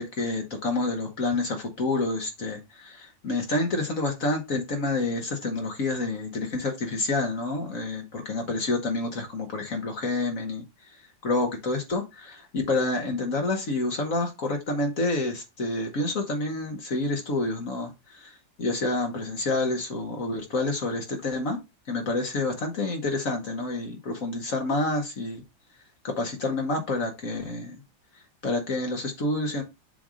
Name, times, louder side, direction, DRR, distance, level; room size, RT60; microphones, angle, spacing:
voice 1, 0.0-10.6 11.2-21.6 21.9-25.4 26.0-27.8 28.4-29.6, left 2 dB, 50° left, 1.4 m, -28 dB
7.3 x 2.6 x 4.9 m
omnidirectional pair, 2.0 m